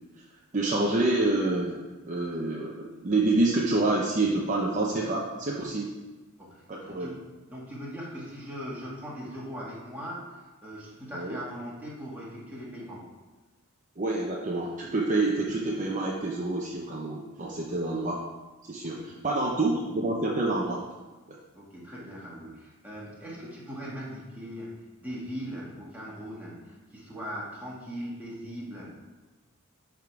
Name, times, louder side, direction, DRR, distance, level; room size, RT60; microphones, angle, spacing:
voice 1, 0.5-5.9 6.7-7.1 11.1-11.4 14.0-18.2 18.7-20.8 21.3-21.4, right 2 dB, 35° right, -3 dB, 0.7 m, -27 dB
voice 2, 6.4-13.1 19.0-19.1 21.5-29.0, equal, 10° right, -6 dB, 1.8 m, -40 dB
11.0 x 3.7 x 4.7 m, 1.2 s
head